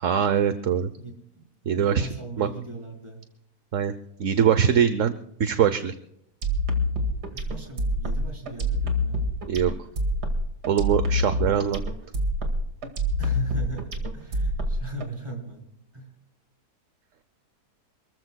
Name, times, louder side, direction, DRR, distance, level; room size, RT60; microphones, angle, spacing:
voice 1, 0.0-0.9 1.7-2.1 2.4-2.5 3.7-3.9 4.2-5.1 5.4-5.9 9.5-9.7 10.7-11.8, right 8 dB, 60° right, 11 dB, 1.1 m, -22 dB
voice 2, 1.0-3.2 7.3-9.3 11.5-11.9 13.2-16.1, right 2 dB, 15° right, 1 dB, 3.9 m, -39 dB
sound 1, 6.4-15.1, left 1 dB, 80° right, 2.7 m, -26 dB
28.0 x 14.0 x 2.3 m, 0.77 s
omnidirectional pair, 1.7 m